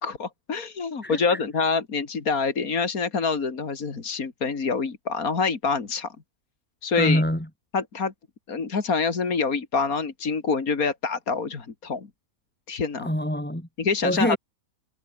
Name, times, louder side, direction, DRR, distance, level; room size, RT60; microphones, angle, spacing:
voice 1, 0.0-6.1 6.8-7.2 7.7-8.1 8.5-12.1 12.7-13.1 13.8-14.4, left 5 dB, 70° left, 2.8 m, -26 dB
voice 2, 1.0-1.4 6.9-7.5 13.0-13.7 14.0-14.4, equal, 5° left, 3.6 m, -25 dB
omnidirectional pair, 1.6 m